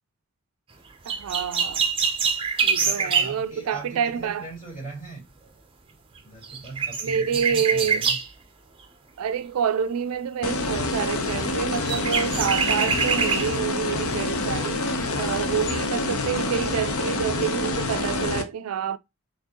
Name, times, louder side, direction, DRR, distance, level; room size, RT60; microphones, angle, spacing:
voice 1, 1.0-1.8 2.6-4.5 7.0-8.0 9.2-19.0, right 7 dB, 75° right, 0.4 m, -28 dB
sound 1, 1.1-3.4 6.2-6.3 6.4-8.3 11.3-11.4 11.7-13.5 14.0-14.1, right 6 dB, 25° right, 0.7 m, -25 dB
voice 2, 2.7-5.2 6.2-8.2, right 2 dB, 35° left, 2.7 m, -40 dB
sound 2, 10.4-18.4, left 2 dB, 70° left, 0.8 m, -27 dB
4.3 x 3.1 x 2.9 m
head